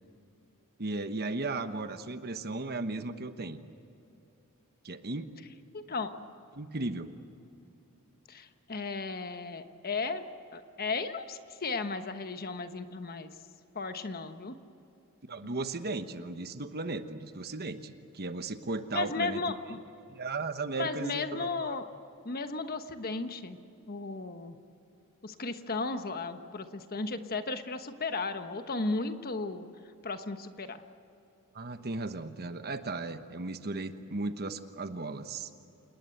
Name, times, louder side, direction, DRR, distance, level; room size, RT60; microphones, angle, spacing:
voice 1, 0.8-3.6 4.8-5.3 6.5-7.1 15.3-19.4 20.1-21.9 31.5-35.5, right 3 dB, 45° right, 9 dB, 1.1 m, -36 dB
voice 2, 5.7-6.1 8.3-10.2 10.5-13.3 13.7-14.5 18.9-19.8 20.8-21.9 22.2-23.6 23.9-24.6 25.2-29.6 30.0-30.8, left 3 dB, 45° left, 8 dB, 1.2 m, -35 dB
28.5 x 19.5 x 7.9 m, 2.8 s
head